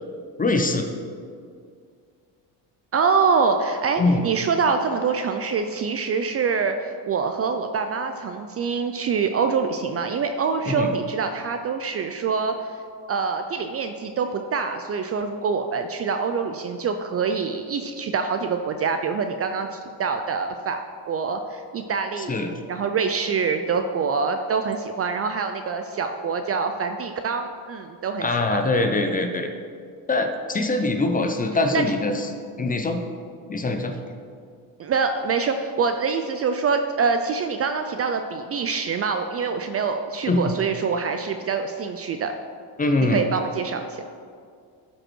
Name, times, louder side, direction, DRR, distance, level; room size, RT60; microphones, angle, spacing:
voice 1, 0.4-0.9 4.0-4.3 10.7-10.9 22.2-22.5 28.2-29.5 30.1-32.3 32.6-33.0 33.5-33.9 40.3-40.5 42.8-43.2, left 2 dB, 20° left, 5 dB, 0.6 m, -23 dB
voice 2, 2.9-12.7 13.1-22.4 22.7-28.6 31.7-31.8 34.8-42.3 43.1-44.0, right 5 dB, 35° right, 6 dB, 0.4 m, -25 dB
12.0 x 5.3 x 4.4 m, 2.2 s
cardioid pair, 125°, 44 cm